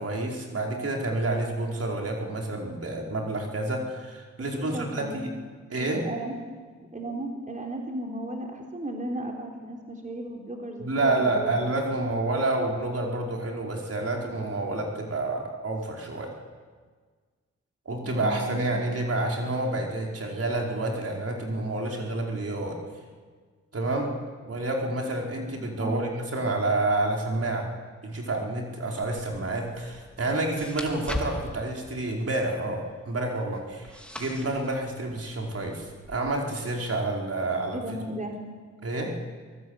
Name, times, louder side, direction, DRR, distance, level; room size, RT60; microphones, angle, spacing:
voice 1, 0.0-5.3 5.7-6.1 10.8-16.4 17.8-22.8 23.7-24.1 24.5-27.7 28.0-37.8 38.8-39.2, right 2 dB, 55° right, 0 dB, 4.9 m, -29 dB
voice 2, 4.5-5.2 5.8-11.6 18.0-18.9 25.8-26.0 37.7-38.5, right 1 dB, 25° right, 0 dB, 3.8 m, -36 dB
sound 1, 29.0-36.2, left 1 dB, 5° left, 3.9 m, -41 dB
23.5 x 17.0 x 8.2 m, 1.5 s
cardioid pair, 55°, 30 cm